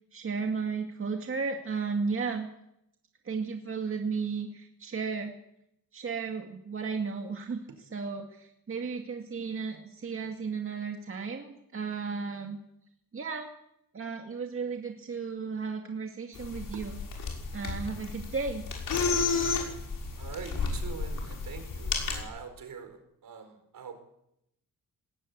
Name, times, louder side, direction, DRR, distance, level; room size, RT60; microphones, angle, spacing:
voice 1, 0.1-2.5 3.2-5.4 5.9-12.6 13.1-13.5 13.9-17.0 17.5-18.6, right 5 dB, 35° right, 3 dB, 2.1 m, -34 dB
sound 1, 16.3-22.2, left 4 dB, 65° left, 6.3 m, -32 dB
voice 2, 20.2-24.0, right 6 dB, 65° right, 8 dB, 4.9 m, -44 dB
19.5 x 17.5 x 8.6 m, 0.79 s
wide cardioid pair, 135°, 35 cm